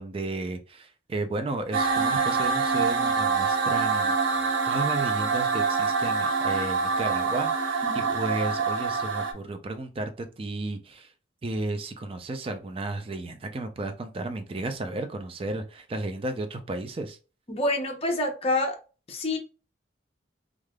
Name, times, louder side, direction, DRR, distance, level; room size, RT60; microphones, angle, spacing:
voice 1, 0.0-4.2 4.6-11.1 11.4-17.2, right 2 dB, 30° right, 0.4 m, -33 dB
sound 1, 1.7-9.3, right 5 dB, 80° right, 0.5 m, -25 dB
voice 2, 7.8-8.1 17.5-18.8 19.1-19.4, left 2 dB, 35° left, 0.7 m, -27 dB
3.3 x 2.4 x 2.2 m
head